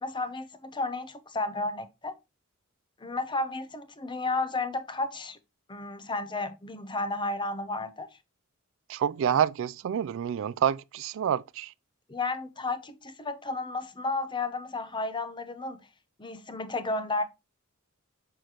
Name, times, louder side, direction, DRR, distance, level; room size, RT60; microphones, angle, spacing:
voice 1, 0.0-2.2 3.0-5.4 5.7-8.1 12.1-15.8 16.2-17.2, left 3 dB, 20° left, 0.7 m, -32 dB
voice 2, 8.9-11.7, right 9 dB, 65° right, 0.3 m, -28 dB
6.5 x 6.3 x 2.9 m
head